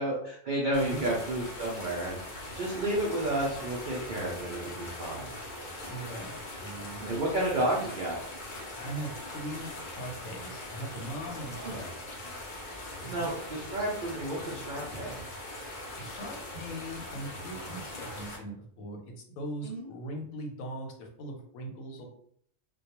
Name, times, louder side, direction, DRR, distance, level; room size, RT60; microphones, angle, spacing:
voice 1, 0.0-5.4 6.9-8.2 11.6-11.8 13.1-15.2 19.6-19.8, right 1 dB, 75° right, -3 dB, 0.4 m, -31 dB
voice 2, 0.7-1.1 5.6-7.0 8.8-12.2 13.0-13.3 16.0-22.1, right 1 dB, 90° left, 2 dB, 1.0 m, -40 dB
sound 1, 0.7-18.4, left 1 dB, 50° left, 0.6 m, -41 dB
2.2 x 2.2 x 2.8 m, 0.65 s
omnidirectional pair, 1.4 m